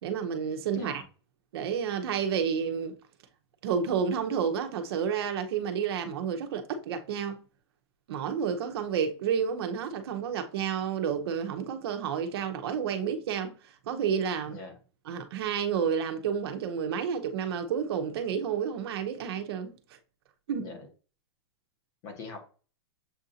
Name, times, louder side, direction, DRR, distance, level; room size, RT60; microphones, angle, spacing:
voice 1, 0.0-1.0 1.5-2.9 3.6-7.4 8.1-14.6 15.1-19.8 20.5-20.7, right 7 dB, 60° right, 0.9 m, -30 dB
voice 2, 0.7-1.1 14.4-14.8 20.6-20.9 22.0-22.4, left 4 dB, 35° left, 1.3 m, -42 dB
7.2 x 2.6 x 2.8 m
supercardioid pair, 160°, 14 cm